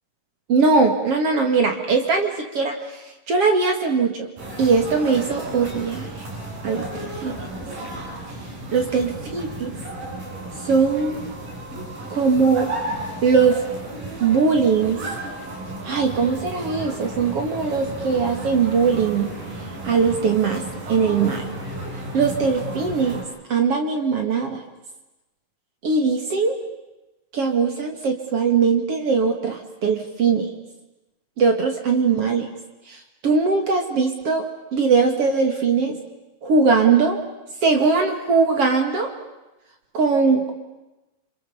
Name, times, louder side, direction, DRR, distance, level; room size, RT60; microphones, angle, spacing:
voice 1, 0.5-2.7 3.3-4.3 4.6-6.1 6.6-7.4 8.7-9.8 10.6-11.3 12.1-12.7 13.2-13.6 14.2-15.0 15.8-19.3 19.8-21.4 22.1-23.2 23.5-24.6 25.8-26.6 27.3-30.5 31.4-32.5 32.9-33.0 33.2-34.4 34.7-36.0 36.4-37.2 37.6-39.1 39.9-40.5, right 5 dB, 45° right, 4 dB, 2.9 m, -20 dB
sound 1, 4.4-23.2, right 1 dB, 75° right, 8.4 m, -33 dB
27.5 x 27.0 x 7.2 m, 1.0 s
omnidirectional pair, 3.9 m